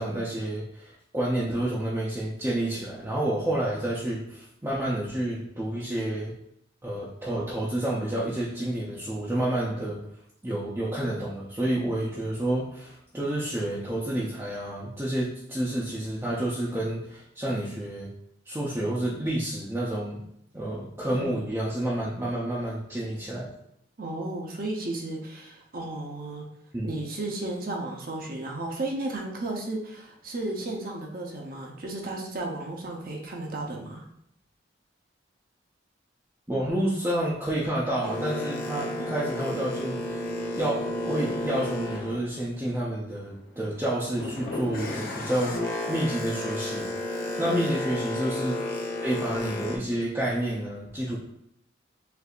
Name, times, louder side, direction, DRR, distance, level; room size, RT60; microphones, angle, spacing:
voice 1, 0.0-6.3 6.8-10.0 10.4-18.1 18.5-20.2 20.5-23.5 26.7-26.9 36.5-46.9 47.4-48.7 49.0-51.2, right 1 dB, 15° right, -7 dB, 0.6 m, -29 dB
voice 2, 24.0-26.4 26.8-34.1 47.4-47.6, right 2 dB, 50° right, 0 dB, 0.7 m, -34 dB
Boat Water vehicle, 38.0-43.0 43.5-49.8, left 1 dB, 45° left, 0.7 m, -32 dB
6.6 x 2.6 x 2.4 m, 0.75 s
head